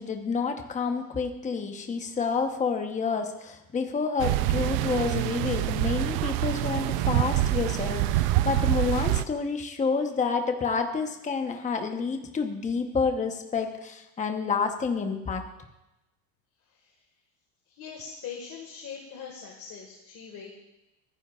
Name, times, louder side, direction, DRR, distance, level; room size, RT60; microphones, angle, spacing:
voice 1, 0.0-15.5, left 5 dB, 15° left, 5 dB, 1.0 m, -29 dB
sound 1, 4.2-9.2, right 15 dB, 70° right, 0.7 m, -26 dB
voice 2, 16.6-17.0 17.7-20.5, left 6 dB, 40° left, 0 dB, 1.8 m, -42 dB
26.0 x 10.0 x 2.4 m, 0.95 s
cardioid pair, 135°, 46 cm